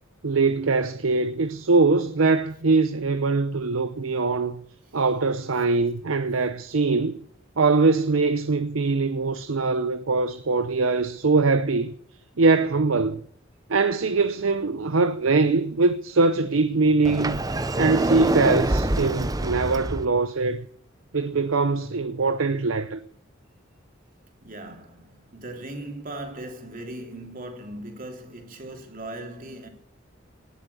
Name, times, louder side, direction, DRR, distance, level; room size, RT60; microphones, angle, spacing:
voice 1, 0.2-4.6 4.9-7.2 7.6-11.9 12.4-13.2 13.7-17.4 17.8-20.7 21.1-23.0, right 3 dB, 85° right, 0.7 m, -22 dB
Sliding door, 17.0-20.0, right 1 dB, 20° right, 0.7 m, -25 dB
voice 2, 24.4-29.7, right 1 dB, 45° right, 3.2 m, -38 dB
19.0 x 7.4 x 9.8 m
head